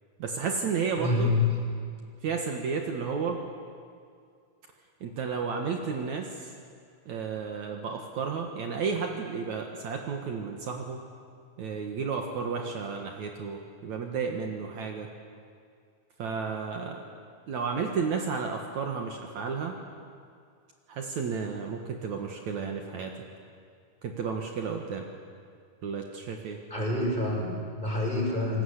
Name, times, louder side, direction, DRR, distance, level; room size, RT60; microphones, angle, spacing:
voice 1, 0.2-1.3 2.2-3.4 5.0-6.5 7.1-11.0 11.6-15.1 16.2-17.0 17.5-19.8 20.9-23.1 24.0-25.1 25.8-26.6, right 5 dB, 65° right, 2 dB, 2.8 m, -32 dB
voice 2, 1.0-1.6 26.7-28.6, left 2 dB, 15° left, -2 dB, 5.5 m, -27 dB
28.0 x 20.0 x 8.3 m, 2.2 s
omnidirectional pair, 3.9 m